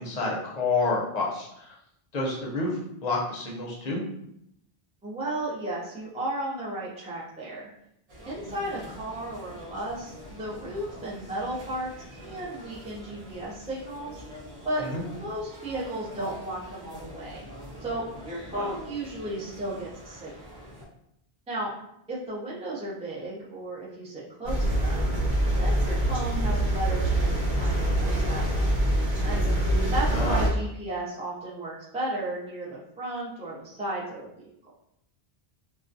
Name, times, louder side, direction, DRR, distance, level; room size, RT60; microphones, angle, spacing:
voice 1, 0.0-1.7 2.1-4.0 14.8-15.0 18.5-18.8 30.1-30.4, left 3 dB, 50° left, -3 dB, 0.6 m, -29 dB
voice 2, 5.0-7.7 8.2-14.2 14.6-17.5 17.8-20.5 21.5-21.7 22.1-25.1 25.6-28.7 29.2-29.5 29.9-34.5, right 1 dB, 10° right, -7 dB, 0.3 m, -34 dB
sound 1, 8.1-20.8, equal, 40° right, 0.7 m, -45 dB
sound 2, 24.4-30.5, right 1 dB, 85° right, 1.1 m, -24 dB
2.2 x 2.2 x 2.6 m, 0.77 s
omnidirectional pair, 1.0 m